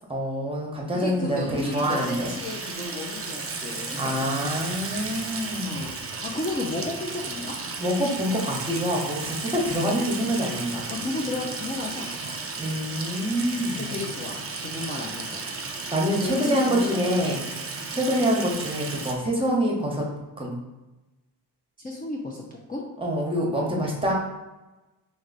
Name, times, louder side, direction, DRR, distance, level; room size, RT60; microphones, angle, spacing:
voice 1, 0.1-2.3 4.0-5.9 7.8-10.9 12.6-13.9 15.9-17.4 17.9-20.1 20.4-20.6 23.0-24.1, equal, 15° right, -2 dB, 1.0 m, -26 dB
voice 2, 0.9-4.3 5.6-7.5 9.7-9.9 10.9-12.4 13.8-15.4 16.2-17.3 21.8-22.4 22.7-22.8, left 2 dB, 20° left, -3 dB, 0.5 m, -33 dB
Water tap faucet / Sink (filling or washing), 1.2-19.1, right 4 dB, 35° right, 0.6 m, -34 dB
3.0 x 2.6 x 3.9 m, 1.1 s
cardioid pair, 75°, 42 cm